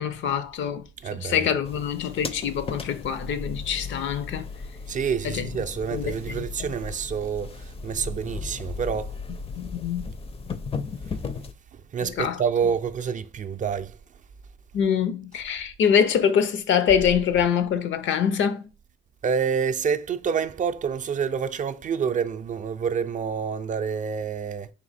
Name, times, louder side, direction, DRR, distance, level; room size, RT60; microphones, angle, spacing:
voice 1, 0.0-0.8 1.1-4.5 5.3-5.5 5.9-6.5 9.6-10.0 12.0-12.4 14.7-18.7, left 8 dB, 70° left, 0.6 m, -24 dB
voice 2, 1.0-1.6 4.9-9.2 11.7-14.0 19.2-24.7, right 6 dB, 40° right, 0.4 m, -28 dB
sound 1, 1.6-11.5, left 4 dB, 30° left, 0.5 m, -36 dB
4.1 x 2.7 x 4.1 m
cardioid pair, 90°, 20 cm